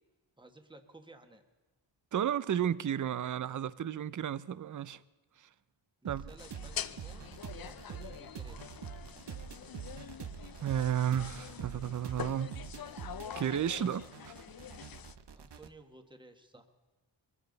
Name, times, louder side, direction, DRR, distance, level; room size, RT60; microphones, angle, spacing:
voice 1, 0.4-1.4 6.0-8.8 15.3-16.7, right 2 dB, 10° right, 1.3 m, -56 dB
voice 2, 2.1-5.0 6.1-6.3 10.6-12.6 13.4-14.3, right 9 dB, 40° right, 0.5 m, -32 dB
sound 1, 6.0-15.7, right 7 dB, 60° right, 0.9 m, -46 dB
sound 2, 6.4-15.1, left 9 dB, 50° left, 0.5 m, -45 dB
23.0 x 15.0 x 3.9 m
wide cardioid pair, 115°, 47 cm